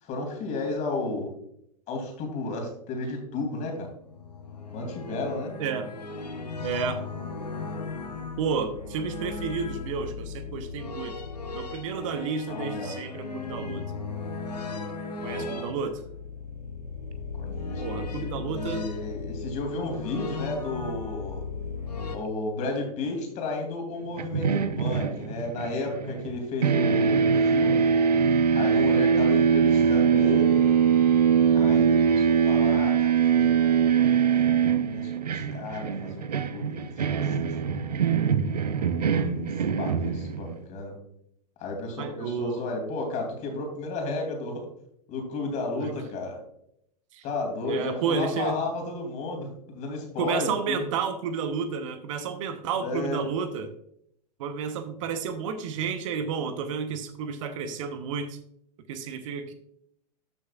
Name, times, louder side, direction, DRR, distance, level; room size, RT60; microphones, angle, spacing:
voice 1, 0.0-1.3 1.9-3.9 4.7-5.5 12.5-13.0 15.1-15.7 17.4-21.4 22.1-27.9 28.5-30.7 31.5-33.9 34.5-37.4 39.1-39.5 39.7-41.0 41.6-44.7 45.1-46.4 47.2-50.8 52.8-53.3, left 2 dB, 35° left, 2 dB, 2.9 m, -33 dB
sound 1, 3.9-22.2, left 4 dB, 80° left, 1.2 m, -36 dB
voice 2, 5.6-5.9 6.6-7.0 8.4-11.2 11.5-13.8 15.2-16.0 17.8-18.8 42.0-42.6 45.8-45.9 47.1-47.2 47.7-48.6 50.2-53.7 54.4-58.4 58.9-59.5, right 6 dB, 50° right, 9 dB, 0.9 m, -31 dB
sound 2, 24.2-26.4 26.6-40.6, right 7 dB, 75° right, 0.7 m, -22 dB
13.0 x 6.4 x 2.4 m, 0.71 s
figure-of-eight pair, 95°, 21 cm